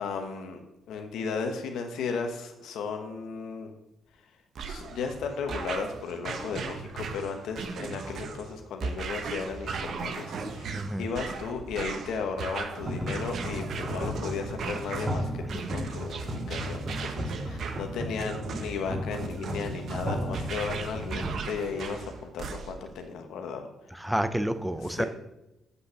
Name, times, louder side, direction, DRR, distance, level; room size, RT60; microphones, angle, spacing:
voice 1, 0.0-3.7 4.6-23.7 24.8-25.1, left 5 dB, 80° left, 4 dB, 1.1 m, -35 dB
sound 1, 4.5-22.9, right 4 dB, 65° right, 1.0 m, -37 dB
voice 2, 10.7-11.0 23.9-25.0, right 1 dB, 5° right, 10 dB, 0.5 m, -29 dB
sound 2, 12.8-21.4, equal, 25° right, 1.6 m, -35 dB
8.1 x 5.5 x 6.9 m, 0.94 s
cardioid pair, 90°, 0 cm